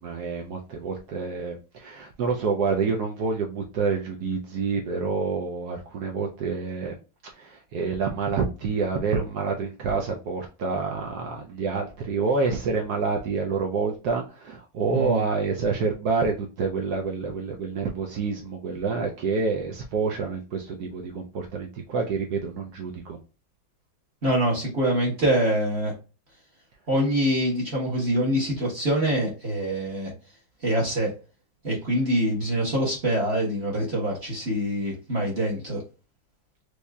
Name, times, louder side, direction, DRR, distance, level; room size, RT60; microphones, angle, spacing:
voice 1, 0.0-7.0 7.2-23.2, right 4 dB, 75° right, 1 dB, 0.9 m, -28 dB
voice 2, 24.2-25.9 26.9-30.1 30.6-31.1 31.6-35.8, right 1 dB, 40° right, -4 dB, 1.1 m, -25 dB
4.7 x 2.7 x 2.2 m, 0.33 s
omnidirectional pair, 2.3 m